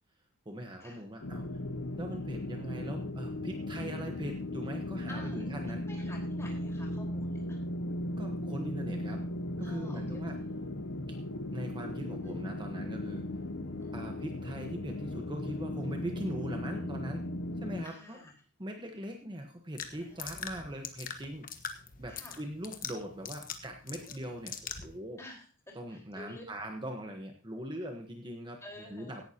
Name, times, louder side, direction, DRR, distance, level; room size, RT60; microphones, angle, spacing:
voice 1, 0.4-1.5 2.0-5.9 8.2-9.2 9.6-10.4 11.1-11.2 11.5-13.2 13.9-17.2 17.6-18.2 18.6-21.5 22.0-24.5 24.8-25.2 25.7-29.2, right 1 dB, 20° right, 3 dB, 1.2 m, -41 dB
sound 1, 1.2-17.8, left 1 dB, 60° left, 0.9 m, -37 dB
voice 2, 5.1-7.6 9.6-10.2 12.2-12.4 13.8-14.2 17.8-18.3 20.0-20.7 22.1-22.4 23.9-24.3 25.2-26.4 28.6-29.2, left 2 dB, 15° left, -1 dB, 4.6 m, -51 dB
sound 2, 19.8-25.0, left 7 dB, 40° left, 1.3 m, -43 dB
17.0 x 11.5 x 2.9 m, 0.36 s
head